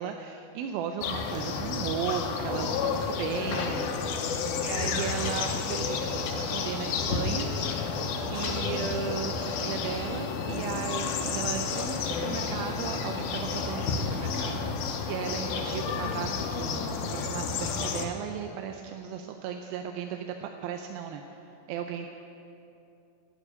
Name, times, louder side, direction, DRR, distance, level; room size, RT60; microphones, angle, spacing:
voice 1, 0.0-4.0 4.6-7.5 8.3-21.2 21.7-22.1, right 8 dB, 85° right, 5 dB, 2.5 m, -35 dB
sound 1, 1.0-18.1, left 5 dB, 90° left, 2.8 m, -31 dB
Rain, 2.4-16.8, right 1 dB, 30° right, 3.4 m, -51 dB
11.0 x 9.2 x 9.5 m, 2.7 s
omnidirectional pair, 4.2 m